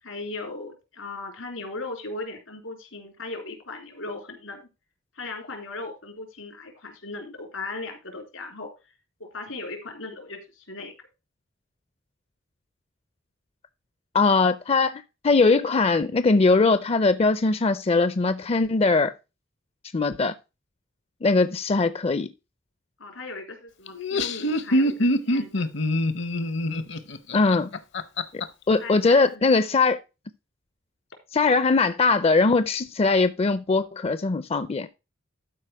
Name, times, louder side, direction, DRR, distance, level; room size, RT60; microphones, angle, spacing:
voice 1, 0.0-4.6 5.1-8.7 9.2-10.9 23.0-25.7 28.8-29.5, left 3 dB, 90° left, 3.4 m, -37 dB
voice 2, 14.1-19.1 19.9-20.3 21.2-22.3 27.3-27.7 28.7-30.0 31.3-34.9, left 3 dB, 30° left, 0.4 m, -21 dB
Laughter, 23.9-28.4, left 1 dB, 65° left, 0.8 m, -24 dB
12.5 x 4.8 x 4.6 m
head